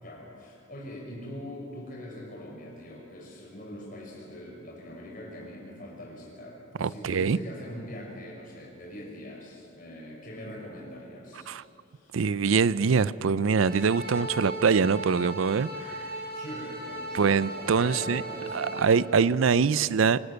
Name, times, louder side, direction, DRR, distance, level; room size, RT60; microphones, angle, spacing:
voice 1, 0.0-11.6 11.8-12.2 16.3-19.0, left 1 dB, 45° left, -2 dB, 5.6 m, -42 dB
voice 2, 6.8-7.4 11.5-11.6 12.1-16.1 17.1-18.2 18.5-20.2, right 5 dB, 90° right, 18 dB, 0.5 m, -24 dB
sound 1, 13.6-18.8, right 1 dB, 50° right, 3.5 m, -37 dB
24.5 x 13.5 x 8.1 m, 2.5 s
head